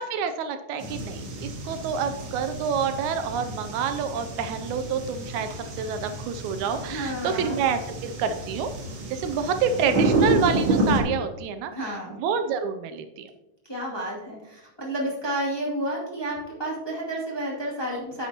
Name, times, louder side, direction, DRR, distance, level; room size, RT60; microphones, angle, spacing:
voice 1, 0.0-5.5 5.7-8.7 9.1-13.3, right 6 dB, 80° right, 9 dB, 1.9 m, -28 dB
sound 1, 0.8-11.0, right 2 dB, 45° right, 2.0 m, -29 dB
voice 2, 6.9-7.6 11.7-12.2 13.6-18.3, right 1 dB, 10° left, -6 dB, 1.9 m, -31 dB
10.0 x 8.6 x 2.8 m, 0.99 s
omnidirectional pair, 3.5 m